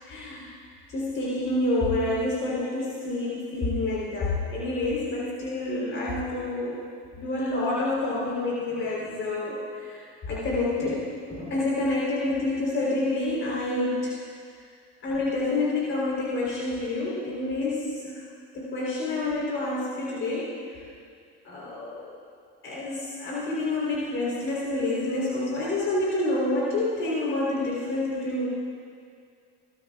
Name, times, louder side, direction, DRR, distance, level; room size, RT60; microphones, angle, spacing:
voice 1, 0.1-0.5 0.9-6.8 7.2-10.0 10.3-14.1 15.0-18.2 18.5-20.6 21.4-22.0 22.6-28.5, left 2 dB, 40° left, -6 dB, 3.8 m, -28 dB
23.5 x 13.0 x 2.4 m, 2.3 s
supercardioid pair, 95°, 30 cm